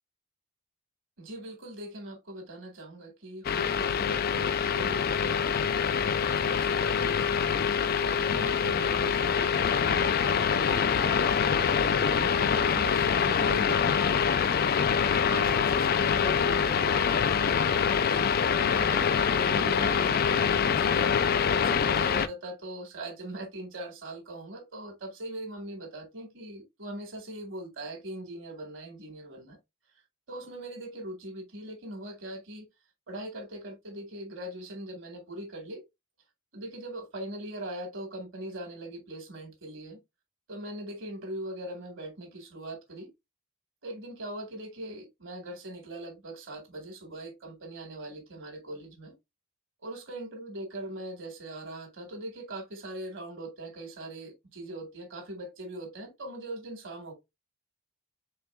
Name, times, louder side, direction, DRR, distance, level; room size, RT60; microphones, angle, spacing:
voice 1, 1.2-7.4 8.0-14.5 15.1-18.3 18.6-21.1 21.5-29.6 30.3-32.7 33.1-35.8 36.5-40.0 40.5-43.1 43.8-49.1 49.8-57.1, right 1 dB, 60° right, 1.7 m, -41 dB
sound 1, 3.4-22.3, left 7 dB, 45° left, 0.3 m, -25 dB
4.5 x 3.7 x 2.4 m
head